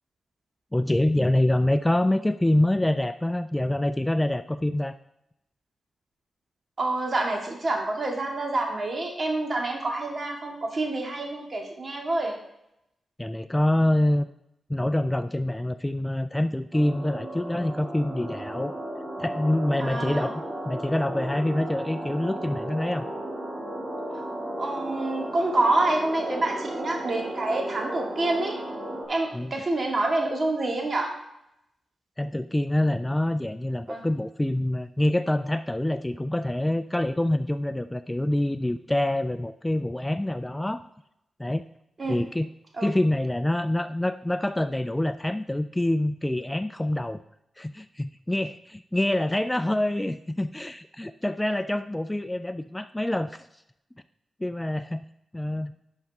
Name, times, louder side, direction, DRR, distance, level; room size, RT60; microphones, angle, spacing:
voice 1, 0.7-5.0 13.2-14.3 14.7-18.8 19.2-23.1 29.3-29.5 32.2-40.8 41.4-41.6 42.0-42.5 42.8-47.2 47.6-53.5 54.4-55.0 55.3-55.7, left 1 dB, 10° left, 12 dB, 0.3 m, -26 dB
voice 2, 6.8-12.3 19.8-20.3 24.6-28.6 29.1-31.1 33.9-34.0 42.0-42.2 42.8-42.9, right 2 dB, 45° right, 1 dB, 2.2 m, -27 dB
sound 1, 16.7-29.0, right 1 dB, 25° right, 2.4 m, -35 dB
11.0 x 5.8 x 3.6 m, 0.82 s
cardioid pair, 60°, 0 cm